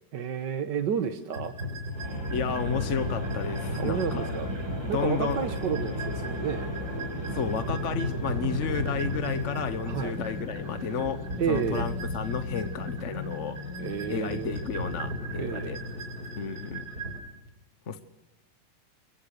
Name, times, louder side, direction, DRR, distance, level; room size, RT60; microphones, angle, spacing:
voice 1, 0.1-1.6 3.8-4.5 4.9-6.7 9.9-10.1 11.4-11.9 13.8-14.5 15.4-15.8, right 7 dB, 55° right, 8 dB, 1.7 m, -31 dB
sound 1, 1.3-17.2, left 1 dB, 40° right, 5.4 m, -35 dB
sound 2, 1.9-15.1, left 1 dB, 10° right, 3.3 m, -38 dB
voice 2, 2.3-4.3 4.9-5.4 7.3-13.6 14.1-15.8 16.3-16.8 17.9-18.0, left 6 dB, 45° left, 10 dB, 1.1 m, -32 dB
29.0 x 23.5 x 6.6 m, 1.0 s
omnidirectional pair, 2.4 m